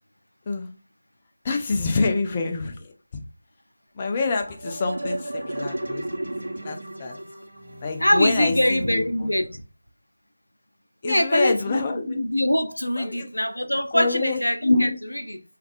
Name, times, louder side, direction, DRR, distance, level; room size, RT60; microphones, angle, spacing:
voice 1, 1.4-2.9 3.9-6.2 6.5-7.2 7.8-9.3 11.0-12.2 13.0-13.3 13.9-14.4, left 4 dB, 25° left, 0.4 m, -27 dB
sound 1, 4.2-9.5, right 1 dB, 65° right, 0.8 m, -34 dB
voice 2, 8.0-9.6 11.0-15.4, left 1 dB, 80° left, 0.5 m, -23 dB
3.2 x 2.4 x 2.4 m
figure-of-eight pair, 160°, 0 cm